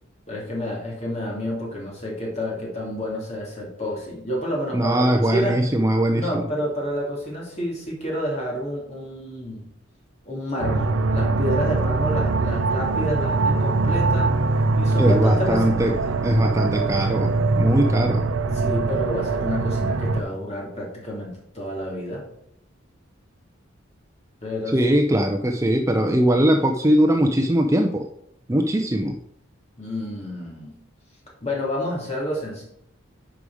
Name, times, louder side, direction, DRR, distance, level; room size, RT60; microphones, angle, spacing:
voice 1, 0.3-5.6 6.1-9.7 10.2-14.3 14.8-16.2 18.5-22.2 24.4-25.0 29.8-30.8 31.4-32.6, equal, 35° left, -3 dB, 3.0 m, -29 dB
voice 2, 4.7-6.3 15.0-15.9 16.2-17.3 17.6-18.2 24.7-28.1 28.5-29.2, right 1 dB, 15° right, 5 dB, 0.5 m, -20 dB
sound 1, 10.6-20.2, right 3 dB, 85° right, 0.6 m, -22 dB
10.0 x 4.9 x 4.9 m, 0.75 s
head